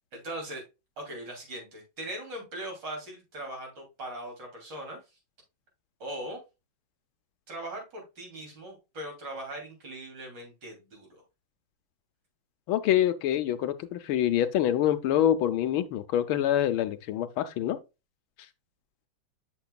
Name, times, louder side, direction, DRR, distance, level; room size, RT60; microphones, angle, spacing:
voice 1, 0.1-0.6 1.0-5.0 6.0-6.4 7.5-11.2, right 1 dB, 60° right, 3.4 m, -40 dB
voice 2, 12.7-17.8, left 11 dB, 80° left, 1.5 m, -26 dB
7.1 x 6.6 x 2.2 m
omnidirectional pair, 2.3 m